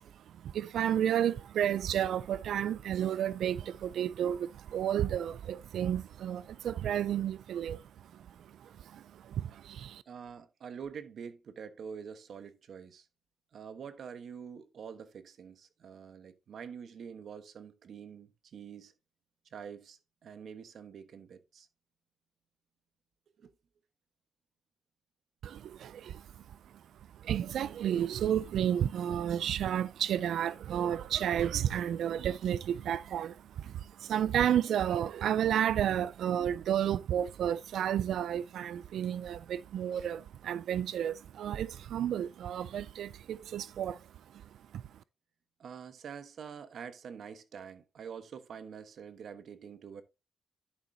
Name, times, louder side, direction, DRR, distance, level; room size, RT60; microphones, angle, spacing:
voice 1, 0.0-10.0 25.4-26.6 27.2-44.0 44.3-44.8, right 10 dB, 85° right, 0.3 m, -32 dB
voice 2, 10.1-13.1 13.5-18.9 19.5-21.7 23.4-23.5 45.6-50.0, right 7 dB, 65° right, 1.2 m, -46 dB
11.0 x 6.5 x 2.7 m
cardioid pair, 105°, 0 cm